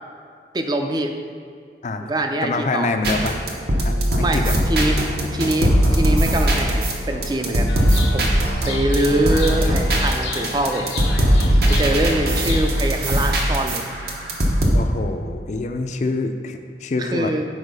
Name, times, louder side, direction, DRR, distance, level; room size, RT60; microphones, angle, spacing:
voice 1, 0.5-1.1 2.0-2.9 4.2-7.8 8.1-8.3 8.7-10.9 11.8-13.8 17.0-17.5, right 1 dB, 25° right, 5 dB, 0.4 m, -23 dB
voice 2, 2.4-3.4 3.8-4.6 14.7-17.3, left 3 dB, 40° left, 6 dB, 0.4 m, -26 dB
sound 1, 3.0-14.7, equal, 60° right, 1.0 m, -20 dB
Chirp tweet, 7.7-13.5, left 4 dB, 80° left, 0.8 m, -34 dB
6.4 x 4.4 x 5.2 m, 2.3 s
head